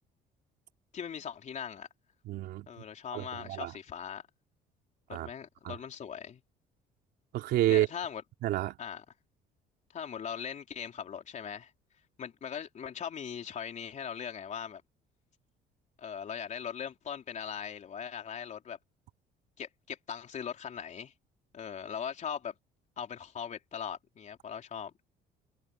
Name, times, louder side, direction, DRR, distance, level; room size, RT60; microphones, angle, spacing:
voice 1, 0.9-1.9 2.7-4.3 5.1-6.4 7.7-8.2 8.8-9.0 9.9-11.7 12.2-14.8 16.0-18.8 19.6-21.1 21.5-22.5 23.0-24.9, left 8 dB, 45° left, 3.7 m, -40 dB
voice 2, 2.2-2.7 3.1-3.7 5.1-5.3 5.6-5.7 7.3-7.9 8.4-8.8, right 14 dB, 80° right, 3.3 m, -29 dB
cardioid pair, 110°, 17 cm